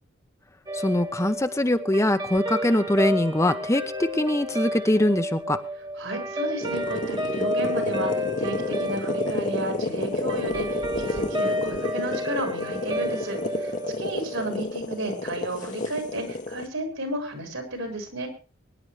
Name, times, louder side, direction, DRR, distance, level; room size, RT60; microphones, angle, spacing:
voice 1, 0.7-5.6, left 1 dB, 15° left, 8 dB, 0.8 m, -23 dB
Guitar, 0.7-15.2, equal, 20° right, 1.3 m, -31 dB
voice 2, 6.0-18.3, right 1 dB, 75° right, 4 dB, 5.1 m, -33 dB
sound 1, 6.6-16.7, left 2 dB, 40° left, 1.1 m, -31 dB
23.5 x 10.5 x 3.2 m, 0.33 s
head